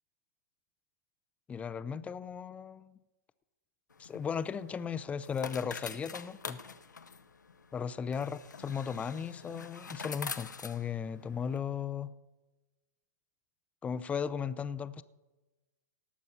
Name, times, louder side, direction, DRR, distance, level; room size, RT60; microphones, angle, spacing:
voice 1, 1.5-2.9 4.0-6.6 7.7-12.1 13.8-15.0, left 7 dB, 15° left, 14 dB, 0.5 m, -36 dB
sound 1, 3.9-11.6, left 5 dB, 85° left, 0.8 m, -45 dB
18.5 x 7.3 x 5.6 m, 1.1 s
hypercardioid pair, 110°, 9 cm